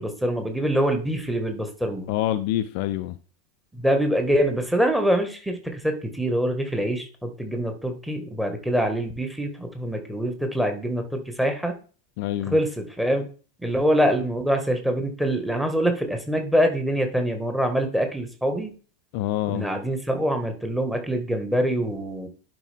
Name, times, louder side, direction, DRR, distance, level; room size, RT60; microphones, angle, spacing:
voice 1, 0.0-2.1 3.7-11.8 12.5-13.3 13.6-18.7 19.5-22.3, equal, 5° right, 4 dB, 1.7 m, -24 dB
voice 2, 2.1-3.2 12.2-12.6 19.1-19.7, left 13 dB, 45° left, 11 dB, 0.5 m, -26 dB
10.5 x 5.2 x 3.5 m, 0.39 s
figure-of-eight pair, 90°, 0 cm